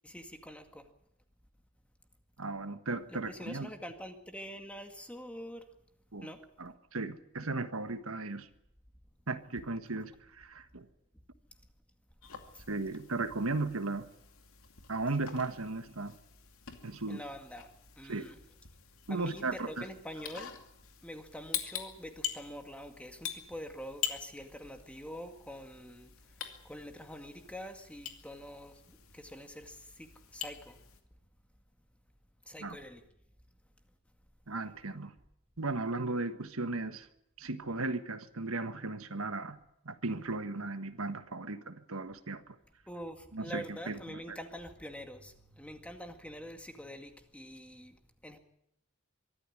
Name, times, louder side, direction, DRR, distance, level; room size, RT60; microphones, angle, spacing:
voice 1, 0.0-0.9 3.1-5.7 6.2-6.4 12.5-12.6 17.1-17.7 18.0-18.4 19.1-20.6 21.0-26.3 26.6-30.8 32.5-33.0 42.9-48.4, equal, 5° left, 6 dB, 2.1 m, -45 dB
voice 2, 2.4-3.7 6.1-6.3 6.6-8.5 9.3-10.9 12.7-14.1 14.9-16.2 16.8-17.2 18.1-18.3 19.1-19.9 32.6-32.8 34.5-35.1 35.6-37.1 37.4-39.6 39.8-42.4 43.3-44.4, right 3 dB, 85° right, 10 dB, 1.5 m, -36 dB
sound 1, 12.2-31.0, left 9 dB, 85° left, 2.5 m, -45 dB
24.0 x 13.5 x 10.0 m, 0.78 s
head